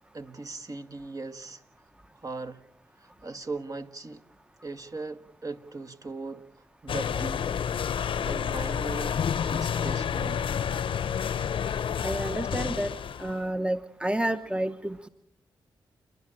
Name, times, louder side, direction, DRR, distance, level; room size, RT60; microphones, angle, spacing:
voice 1, 0.1-1.6 2.2-2.6 3.0-4.2 4.6-6.5 6.8-7.9 8.2-9.2 9.5-10.5, right 3 dB, 40° right, 1.6 m, -39 dB
sound 1, 6.9-13.4, left 8 dB, 70° left, 0.8 m, -29 dB
voice 2, 12.0-12.9 13.2-15.1, right 1 dB, 10° right, 0.9 m, -30 dB
30.0 x 11.5 x 8.9 m
cardioid pair, 55°, 9 cm